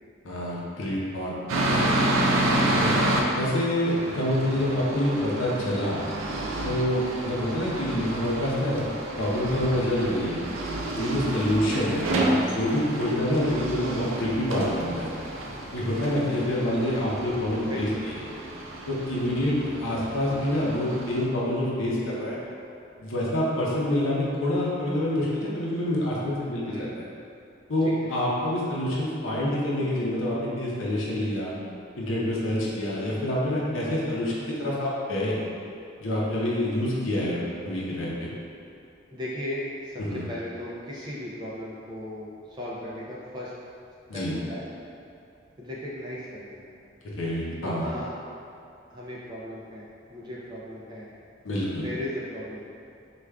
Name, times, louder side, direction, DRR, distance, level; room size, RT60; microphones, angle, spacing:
voice 1, 0.2-1.3 2.8-2.9 3.4-6.0 6.6-8.9 9.2-10.4 10.9-12.1 12.4-15.1 15.7-18.2 18.9-22.4 23.0-27.0 27.7-31.5 32.0-35.4 36.0-37.4 37.6-38.3 40.0-40.3 44.1-44.4 47.0-47.9 51.4-51.9, left 1 dB, 80° left, -5 dB, 0.6 m, -27 dB
sound 1, 1.5-3.2 3.9-21.3, right 1 dB, 90° right, 0.4 m, -29 dB
voice 2, 17.6-18.1 26.6-26.9 27.8-28.1 37.2-37.4 39.1-43.5 44.1-44.7 45.6-46.6 47.6-48.1 48.9-51.1 51.7-52.7, left 1 dB, 20° right, -6 dB, 0.3 m, -37 dB
4.7 x 2.3 x 2.2 m, 2.6 s
head